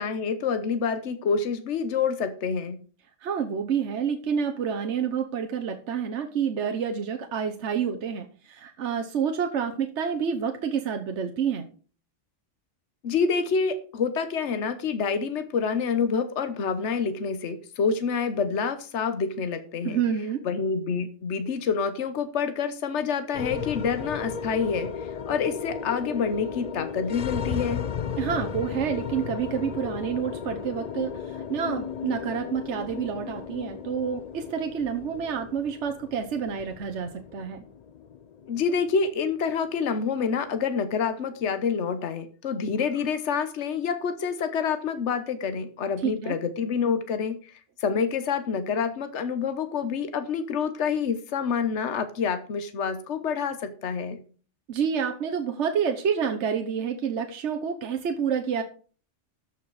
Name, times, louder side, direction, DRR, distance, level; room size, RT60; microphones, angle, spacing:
voice 1, 0.0-2.8 13.0-20.0 20.4-25.0 25.3-27.9 38.5-47.4 47.8-54.2, left 6 dB, 65° left, 10 dB, 1.3 m, -27 dB
voice 2, 3.2-11.7 19.8-20.4 28.2-37.6 46.0-46.3 54.7-58.6, right 7 dB, 65° right, 5 dB, 1.3 m, -28 dB
sound 1, 23.3-41.7, left 7 dB, 50° left, 0.5 m, -35 dB
13.0 x 5.9 x 4.8 m, 0.39 s
omnidirectional pair, 1.3 m